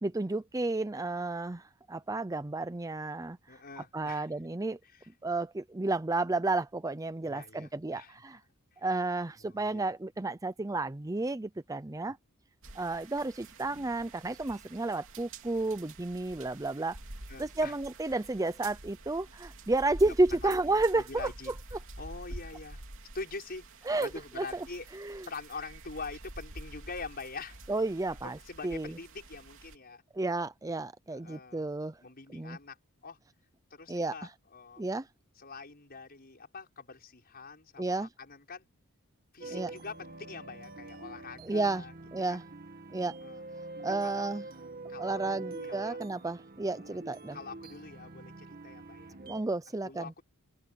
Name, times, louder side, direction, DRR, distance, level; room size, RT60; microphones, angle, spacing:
voice 1, 0.0-3.4 3.8-4.8 5.2-8.4 8.8-12.2 12.7-17.0 17.4-21.3 23.9-24.1 24.4-24.6 24.9-25.2 27.7-28.4 28.6-28.9 30.1-32.0 32.3-32.6 33.9-34.1 34.8-35.1 37.8-38.1 39.5-39.7 41.4-41.8 42.1-42.4 42.9-43.1 43.8-44.4 45.0-47.4 49.2-50.1, right 2 dB, 15° right, 0.5 m, -31 dB
voice 2, 3.5-4.3 4.8-5.1 7.2-8.2 8.7-8.8 9.4-9.8 17.3-17.8 20.1-20.2 20.4-21.6 22.0-22.8 23.1-24.9 25.3-27.7 28.1-30.0 31.1-31.7 32.0-32.8 33.0-33.2 33.7-34.9 35.4-38.7 39.3-41.9 42.3-42.4 43.2-43.4 44.0-44.3 44.9-46.0 46.7-47.0 47.3-49.2 49.8-50.2, left 4 dB, 45° left, 6.2 m, -45 dB
sound 1, 12.6-29.7, right 2 dB, 60° right, 3.2 m, -48 dB
sound 2, 39.4-49.4, right 3 dB, 45° right, 2.2 m, -45 dB
head